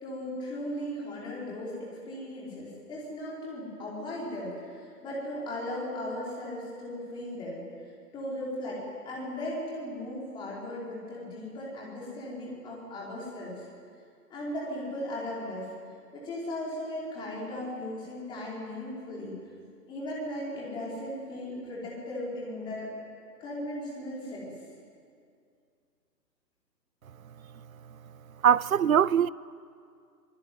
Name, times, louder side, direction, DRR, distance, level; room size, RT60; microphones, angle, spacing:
voice 1, 0.0-7.6 8.1-13.6 14.3-15.7 16.1-19.3 19.9-22.9 23.4-24.5, left 1 dB, 10° left, 5.0 m, -37 dB
voice 2, 28.4-29.3, right 9 dB, 55° right, 0.7 m, -21 dB
26.5 x 20.5 x 9.5 m
hypercardioid pair, 160°, 49 cm